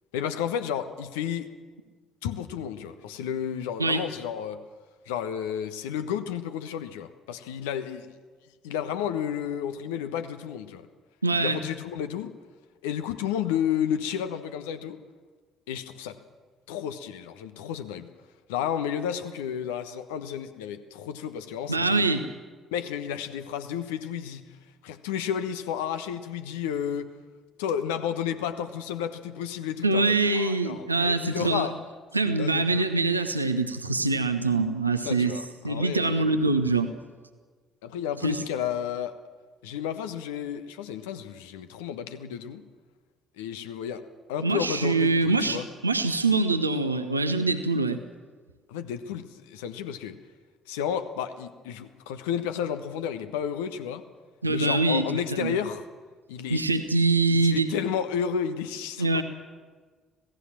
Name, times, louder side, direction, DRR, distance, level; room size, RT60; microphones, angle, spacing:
voice 1, 0.1-1.5 2.2-4.6 5.1-8.1 8.6-10.9 11.4-12.3 12.8-15.0 15.7-16.2 16.7-18.1 18.5-22.1 22.7-24.5 24.8-27.1 27.6-31.7 32.2-32.9 35.0-36.3 37.8-39.2 39.6-42.6 43.4-45.7 48.7-50.2 50.7-54.0 54.5-55.8 56.3-56.6 57.3-59.2, left 8 dB, 70° left, 9 dB, 1.2 m, -32 dB
voice 2, 11.2-11.6 21.7-22.3 29.8-31.7 32.1-35.4 35.6-36.9 38.2-38.4 44.4-48.0 54.4-55.6 56.5-57.7 59.0-59.2, right 3 dB, 85° right, 7 dB, 0.9 m, -24 dB
26.0 x 17.5 x 7.5 m, 1.5 s
figure-of-eight pair, 50°, 0 cm